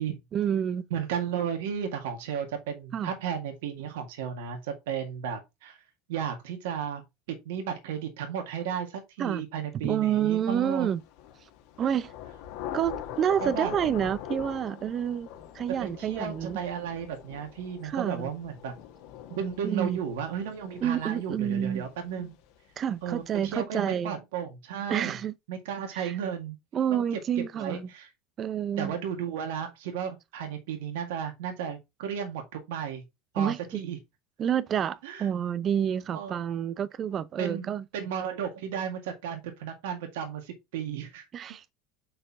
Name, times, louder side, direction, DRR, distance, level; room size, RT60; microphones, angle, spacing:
voice 1, 0.3-0.8 2.9-3.1 9.2-9.4 9.8-11.0 11.8-12.1 12.7-15.3 15.5-16.6 17.8-18.3 19.6-20.0 20.8-21.9 22.8-24.1 24.9-25.3 25.9-26.1 26.7-27.9 28.4-28.9 33.4-33.6 34.4-37.8 41.3-41.7, right 9 dB, 40° right, 0.6 m, -28 dB
voice 2, 0.9-5.8 6.1-7.0 7.3-10.9 13.4-13.7 15.8-18.7 19.3-22.3 23.0-25.2 25.5-26.6 26.9-28.1 28.8-33.0 33.3-34.0 35.0-35.3 36.1-36.4 37.4-41.2, right 8 dB, 80° right, 1.9 m, -34 dB
Thunder / Rain, 11.0-22.6, left 10 dB, 70° left, 1.7 m, -43 dB
6.5 x 4.6 x 3.6 m
supercardioid pair, 110°, 0 cm